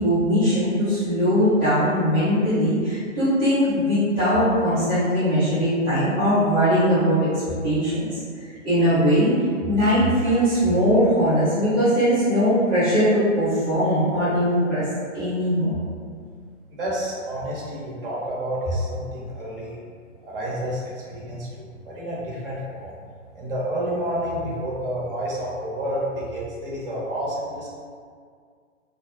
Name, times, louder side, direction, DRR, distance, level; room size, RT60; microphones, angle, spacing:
voice 1, 0.0-7.3 7.6-8.1 8.6-9.3 9.7-14.9 15.1-15.7, equal, 10° right, -18 dB, 0.4 m, -20 dB
voice 2, 16.7-19.8 20.3-20.8 21.1-22.9 23.3-27.7, right 1 dB, 45° right, -6 dB, 0.8 m, -29 dB
2.2 x 2.0 x 2.9 m, 2.1 s
figure-of-eight pair, 135°, 39 cm